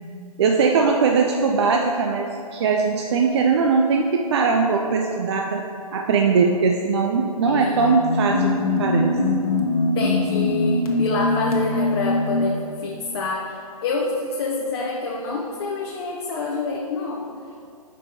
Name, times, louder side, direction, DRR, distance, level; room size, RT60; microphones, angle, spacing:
voice 1, 0.4-5.6 5.9-9.2, right 4 dB, 45° right, 1 dB, 0.5 m, -20 dB
sound 1, 7.3-12.6, left 2 dB, 70° left, 1.1 m, -22 dB
voice 2, 7.4-8.0 9.9-17.3, left 3 dB, 40° left, -1 dB, 0.7 m, -27 dB
5.3 x 5.1 x 4.1 m, 2.4 s
figure-of-eight pair, 130°, 19 cm